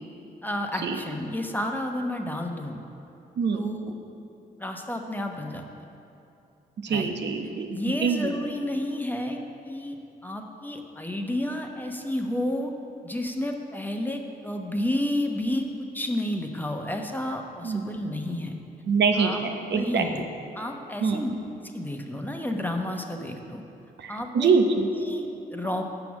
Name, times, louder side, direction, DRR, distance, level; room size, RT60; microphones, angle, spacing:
voice 1, 0.4-2.8 3.5-4.0 4.6-5.6 6.9-7.1 7.7-10.0 10.2-12.7 13.0-18.5 19.2-19.4 19.7-20.2 20.5-21.3 21.7-23.6 24.1-24.5 24.9-25.8, left 1 dB, 10° left, 3 dB, 1.0 m, -31 dB
voice 2, 3.4-3.7 6.8-8.3 17.6-17.8 18.9-20.0 21.0-21.3 23.2-23.3 24.0-24.9, right 5 dB, 60° right, 5 dB, 0.8 m, -25 dB
6.1 x 5.8 x 7.1 m, 2.8 s
hypercardioid pair, 40°, 21 cm